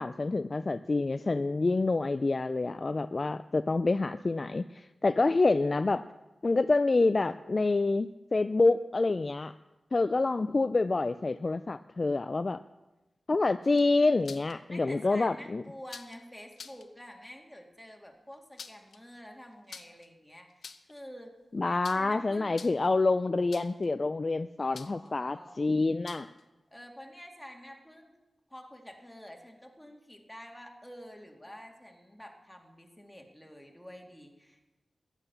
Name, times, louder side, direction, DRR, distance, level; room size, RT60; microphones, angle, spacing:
voice 1, 0.0-6.1 6.4-9.5 9.9-12.6 13.3-15.6 21.5-26.3, left 3 dB, 40° left, 12 dB, 0.4 m, -27 dB
sound 1, 13.6-14.5 15.9-16.2 16.5-16.9 18.3-19.0 19.7-20.1 20.5-21.0 21.8-22.2 22.5-22.9 23.5-23.9 24.7-25.1 26.1-26.4, left 5 dB, 80° left, 0.8 m, -47 dB
voice 2, 14.7-21.4 21.6-22.6 24.6-25.6 26.7-28.1 28.5-34.7, equal, 5° left, 2 dB, 2.2 m, -48 dB
15.0 x 10.0 x 6.8 m, 1.1 s
wide cardioid pair, 95°, 0 cm